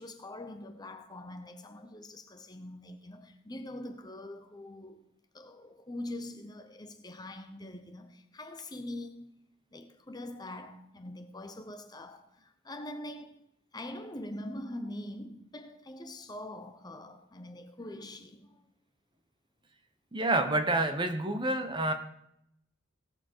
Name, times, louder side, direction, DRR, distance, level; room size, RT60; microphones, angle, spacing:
voice 1, 0.0-5.0 5.3-9.4 9.7-13.5 13.7-18.6, left 1 dB, 20° left, 0.8 m, -43 dB
voice 2, 20.1-21.9, right 2 dB, 25° right, 1.0 m, -28 dB
17.0 x 7.1 x 4.6 m
head